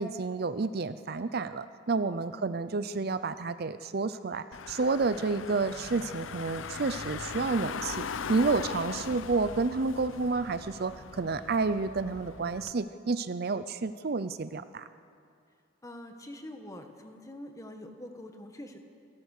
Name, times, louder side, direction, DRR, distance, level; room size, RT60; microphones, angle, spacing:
voice 1, 0.0-14.9, right 4 dB, 50° right, 13 dB, 0.5 m, -30 dB
Car / Engine, 4.5-12.7, left 5 dB, 80° left, 0.6 m, -40 dB
voice 2, 15.8-18.8, left 1 dB, 15° left, 5 dB, 1.5 m, -45 dB
28.5 x 14.5 x 6.6 m, 2.4 s
head